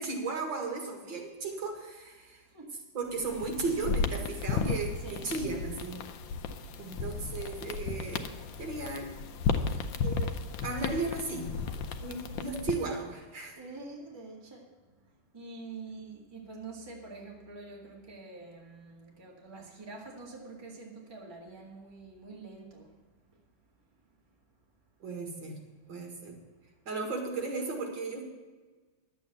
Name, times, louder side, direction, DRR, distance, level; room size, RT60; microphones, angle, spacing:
voice 1, 0.0-2.4 2.9-6.0 6.8-8.3 8.6-9.1 10.0-10.3 10.6-11.5 12.0-13.5 25.0-25.6 25.9-26.4 26.9-28.2, right 3 dB, 60° right, 2.5 m, -35 dB
voice 2, 2.4-2.8 5.0-5.3 11.5-12.3 13.4-22.9 23.3-23.4, right 3 dB, 15° right, 1.6 m, -47 dB
sound 1, 3.1-12.9, left 5 dB, 70° left, 1.4 m, -34 dB
11.0 x 8.0 x 7.1 m
omnidirectional pair, 2.4 m